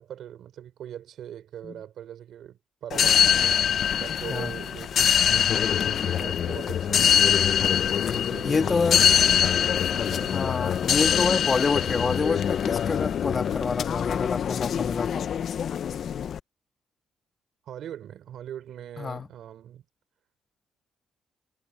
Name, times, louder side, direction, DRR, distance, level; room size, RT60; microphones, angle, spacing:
voice 1, 0.0-3.6 4.0-7.4 8.1-10.6 11.7-12.0 17.6-19.8, right 10 dB, 70° right, 4.1 m, -41 dB
sound 1, 2.9-16.4, left 8 dB, 60° left, 0.6 m, -24 dB
voice 2, 8.4-9.0 10.3-15.3 19.0-19.3, left 4 dB, 35° left, 1.7 m, -27 dB
cardioid pair, 90°, 0 cm